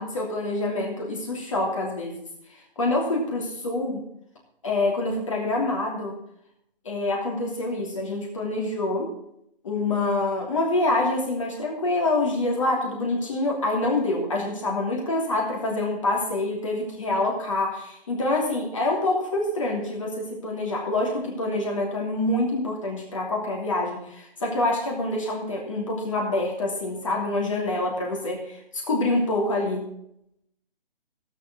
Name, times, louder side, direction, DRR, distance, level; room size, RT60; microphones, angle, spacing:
voice 1, 0.0-2.2 2.5-4.0 4.6-6.2 6.8-9.1 9.6-29.8, left 2 dB, 35° left, -1 dB, 2.8 m, -26 dB
16.5 x 7.2 x 5.9 m, 0.74 s
hypercardioid pair, 175°, 30 cm